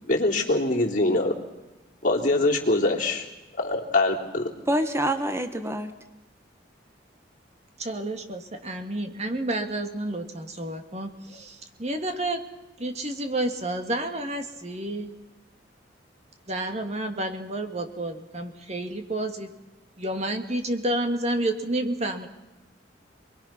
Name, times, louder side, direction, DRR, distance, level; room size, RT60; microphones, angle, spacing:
voice 1, 0.1-1.3 2.0-3.2 3.6-4.5, left 2 dB, 45° left, 3.4 m, -23 dB
voice 2, 4.7-5.9, right 1 dB, 15° right, 1.1 m, -26 dB
voice 3, 7.8-12.4 12.8-15.1 16.5-19.5 20.0-22.3, right 1 dB, 35° right, 2.0 m, -30 dB
28.0 x 21.5 x 5.9 m
head